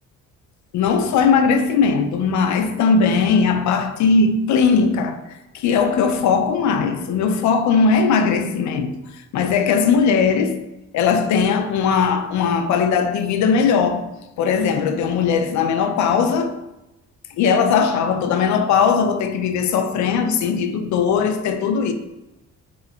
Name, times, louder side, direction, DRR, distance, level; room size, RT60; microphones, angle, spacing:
voice 1, 0.7-9.0 9.3-10.6 10.9-14.1 14.4-16.6 17.4-21.9, left 5 dB, 70° left, 0.4 m, -19 dB
3.2 x 2.9 x 2.3 m
cardioid pair, 90°, 30 cm